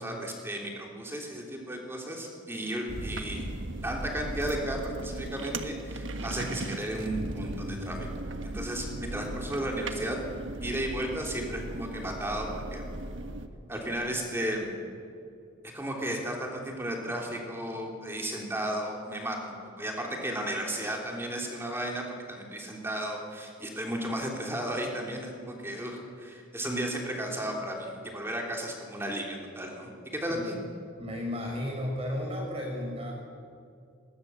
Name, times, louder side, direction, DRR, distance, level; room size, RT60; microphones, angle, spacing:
voice 1, 0.0-3.5 3.8-8.1 8.4-10.2 10.6-12.8 13.7-14.7 15.7-30.6, right 1 dB, 10° right, 0 dB, 3.2 m, -34 dB
sound 1, 2.9-13.5, right 1 dB, 70° right, 1.4 m, -37 dB
voice 2, 31.0-33.1, left 1 dB, 30° right, 0 dB, 6.0 m, -33 dB
20.0 x 20.0 x 7.4 m, 2.5 s
head